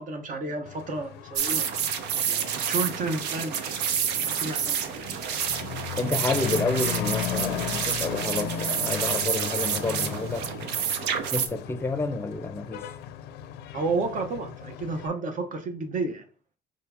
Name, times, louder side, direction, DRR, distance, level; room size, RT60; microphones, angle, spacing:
voice 1, 0.0-1.7 2.2-5.1 13.7-16.3, right 3 dB, 50° right, 0.9 m, -32 dB
Truck / Accelerating revving vroom, 0.7-15.1, left 10 dB, 80° left, 0.5 m, -36 dB
sound 1, 1.4-11.5, right 8 dB, 85° right, 0.6 m, -29 dB
voice 2, 6.0-10.8 11.3-12.9, left 3 dB, 15° left, 0.6 m, -30 dB
4.9 x 2.8 x 3.5 m
cardioid pair, 110°, 17 cm